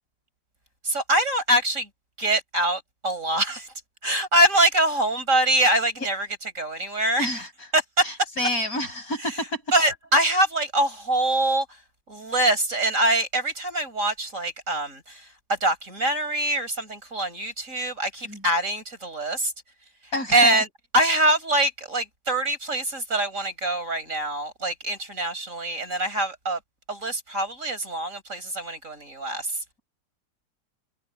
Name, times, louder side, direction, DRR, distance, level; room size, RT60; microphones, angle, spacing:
voice 1, 0.8-1.9 2.2-3.7 4.0-6.3 6.5-7.3 7.7-8.0 9.7-11.7 12.1-19.5 20.3-20.7 20.9-26.6 26.9-29.6, right 1 dB, 40° right, 6.4 m, -24 dB
voice 2, 7.2-7.7 8.0-9.6 18.2-18.5 20.1-20.6, left 1 dB, 45° left, 7.8 m, -29 dB
omnidirectional pair, 2.1 m